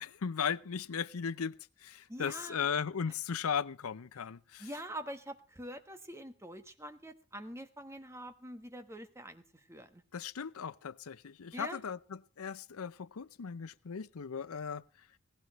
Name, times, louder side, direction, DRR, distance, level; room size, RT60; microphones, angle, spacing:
voice 1, 0.0-4.7 10.1-14.8, left 7 dB, 85° left, 0.6 m, -37 dB
voice 2, 2.1-2.7 4.6-10.0 11.5-11.8, right 1 dB, 10° right, 1.3 m, -45 dB
17.5 x 16.0 x 3.1 m
head